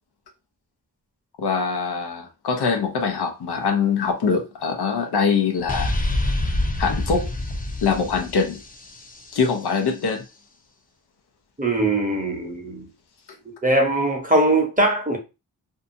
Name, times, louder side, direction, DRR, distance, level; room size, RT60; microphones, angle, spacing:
voice 1, 1.4-5.9 6.8-7.3 7.8-8.6 9.3-10.3, left 5 dB, 90° left, 0.7 m, -23 dB
sound 1, 5.7-9.4, left 1 dB, 20° left, 0.6 m, -26 dB
voice 2, 11.6-12.9 13.6-15.2, right 2 dB, 20° right, 0.9 m, -21 dB
2.7 x 2.3 x 2.6 m
cardioid pair, 40°, 38 cm